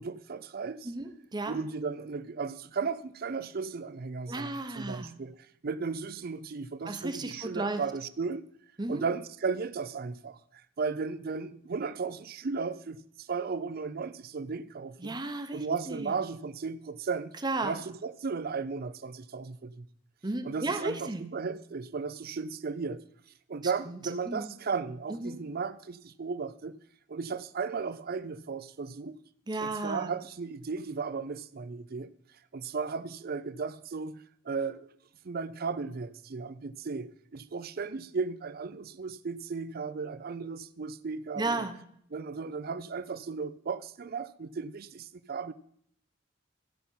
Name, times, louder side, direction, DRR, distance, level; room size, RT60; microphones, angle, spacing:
voice 1, 0.0-0.9 1.5-5.4 5.6-8.5 8.9-10.4 10.8-15.2 15.5-17.3 17.6-19.8 20.4-23.0 23.5-26.8 27.1-29.2 29.6-32.1 32.5-34.9 35.2-41.7 42.1-45.5, right 5 dB, 50° right, 0.5 m, -35 dB
voice 2, 0.8-1.6 4.3-5.2 6.9-7.8 8.8-9.1 15.0-16.1 17.4-17.8 20.2-21.2 23.9-24.0 24.3-24.5 25.1-25.4 29.5-30.1 41.4-41.7, right 2 dB, 20° right, 0.9 m, -34 dB
15.0 x 5.7 x 5.6 m
head